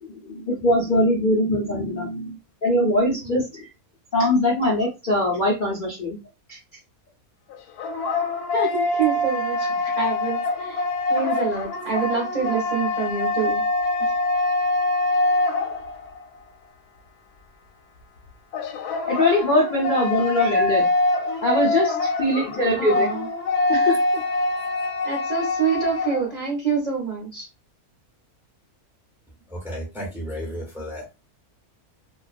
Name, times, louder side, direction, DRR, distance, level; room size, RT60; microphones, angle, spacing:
voice 1, 0.0-2.4 2.6-3.7 4.1-6.2 6.5-6.6 19.1-20.9 21.4-23.1 23.7-24.2, left 1 dB, 50° left, -4 dB, 0.6 m, -22 dB
sound 1, 7.5-16.2 18.5-26.3, left 2 dB, 85° left, 1.1 m, -24 dB
voice 2, 8.5-10.8 11.1-13.6 14.0-14.1 22.8-23.3 25.0-27.5, right 5 dB, 40° right, -5 dB, 0.7 m, -26 dB
voice 3, 29.5-31.1, equal, ahead, -2 dB, 0.5 m, -33 dB
2.4 x 2.2 x 2.4 m, 0.26 s
omnidirectional pair, 1.6 m